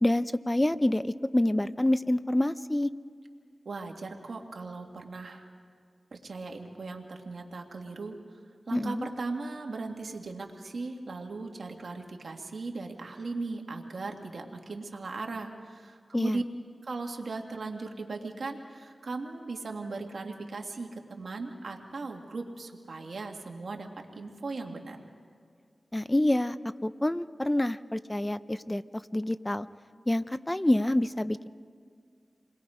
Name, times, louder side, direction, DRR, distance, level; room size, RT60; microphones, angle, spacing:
voice 1, 0.0-2.9 8.7-9.1 16.1-16.4 25.9-26.6 26.8-28.8 29.1-29.7 30.1-31.5, left 1 dB, 20° left, 13 dB, 0.7 m, -27 dB
voice 2, 3.7-5.4 6.1-8.2 8.7-16.4 16.8-23.9 24.2-25.0, right 3 dB, 80° right, 2 dB, 2.0 m, -38 dB
28.5 x 21.5 x 5.0 m, 2.2 s
cardioid pair, 40°, 0 cm